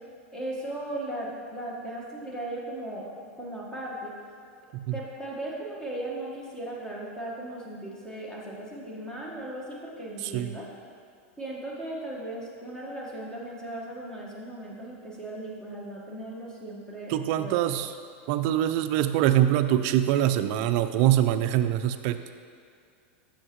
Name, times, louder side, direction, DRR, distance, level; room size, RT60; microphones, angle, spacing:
voice 1, 0.3-3.1 3.4-4.1 4.9-10.7 11.4-17.6, right 1 dB, 10° left, -4 dB, 1.5 m, -37 dB
voice 2, 10.2-10.5 17.1-17.9 18.3-22.2, right 12 dB, 55° right, 10 dB, 0.4 m, -24 dB
7.7 x 6.5 x 3.1 m, 2.4 s
hypercardioid pair, 120°, 7 cm